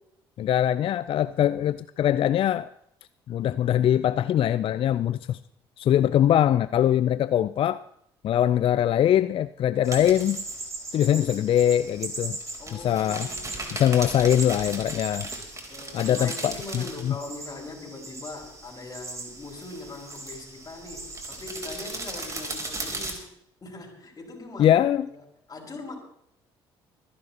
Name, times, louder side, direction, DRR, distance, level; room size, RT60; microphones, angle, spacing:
voice 1, 0.4-2.7 3.3-5.4 5.8-7.8 8.2-10.4 10.9-12.4 12.7-13.3 13.7-15.3 15.9-17.2 24.6-25.1, left 11 dB, 45° left, 0.4 m, -22 dB
sound 1, 9.8-23.1, right 2 dB, 25° right, 3.6 m, -37 dB
voice 2, 12.6-13.9 15.6-23.2 23.6-24.8 25.1-25.2 25.5-26.0, left 3 dB, 30° left, 5.4 m, -41 dB
25.5 x 11.0 x 2.9 m
hypercardioid pair, 55°, 13 cm